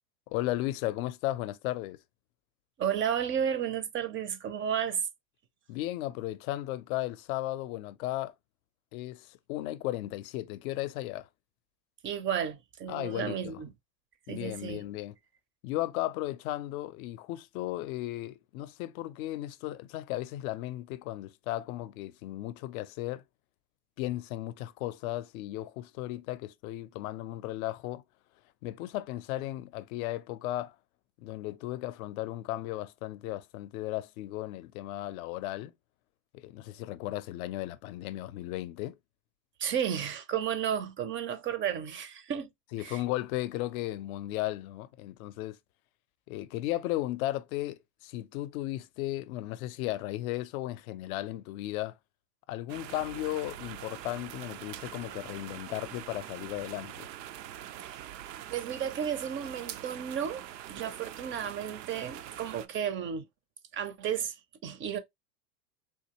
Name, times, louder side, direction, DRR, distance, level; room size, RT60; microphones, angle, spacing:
voice 1, 0.3-2.0 5.7-8.3 8.9-11.3 12.9-13.6 14.3-15.2 15.6-23.2 24.0-28.0 28.6-30.8 31.2-35.7 36.3-39.0 42.7-45.6 46.3-52.0 52.5-57.1, left 15 dB, 55° left, 0.6 m, -35 dB
voice 2, 2.8-5.1 12.0-13.7 14.3-14.8 39.6-42.5 42.8-43.0 57.8-58.1 58.5-63.3 63.7-65.0, right 8 dB, 25° right, 0.5 m, -33 dB
sound 1, 52.7-62.7, right 12 dB, 80° right, 0.6 m, -44 dB
3.7 x 2.6 x 2.8 m
hypercardioid pair, 100°, 50 cm